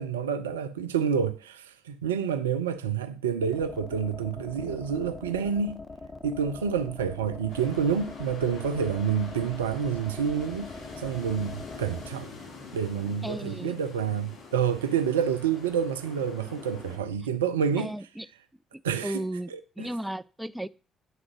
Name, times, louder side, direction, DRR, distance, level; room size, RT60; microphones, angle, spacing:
voice 1, 0.0-5.8 6.2-12.3 12.7-17.9 18.8-19.2 19.5-19.9, right 7 dB, 80° right, 0.4 m, -28 dB
sound 1, 3.4-12.1, left 2 dB, 30° left, 0.7 m, -43 dB
sound 2, 7.5-17.0, left 4 dB, 60° left, 3.0 m, -45 dB
voice 2, 13.2-13.8 17.8-18.3 18.7-19.5 19.8-20.7, right 1 dB, 5° right, 0.4 m, -35 dB
9.0 x 3.8 x 5.8 m
figure-of-eight pair, 45°, 0 cm